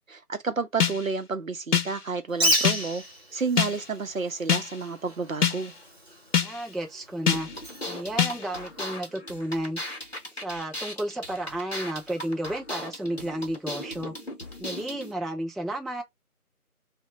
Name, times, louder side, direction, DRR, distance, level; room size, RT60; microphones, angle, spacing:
voice 1, 0.1-3.0 3.3-5.7, right 4 dB, 60° right, 0.5 m, -30 dB
sound 1, 0.8-1.2 1.7-2.1 2.6-3.0 3.6-3.9 4.5-4.8 5.4-5.8 6.3-6.7 7.3-7.6 8.2-8.5, left 8 dB, 80° left, 0.7 m, -25 dB
Bird, 2.3-8.9, equal, 45° right, 0.9 m, -33 dB
voice 2, 6.4-7.5 7.9-10.1 10.4-14.1 14.6-16.0, right 1 dB, ahead, 0.4 m, -32 dB
sound 2, 7.3-15.1, left 1 dB, 45° left, 0.8 m, -38 dB
2.7 x 2.1 x 4.0 m
figure-of-eight pair, 170°, 45 cm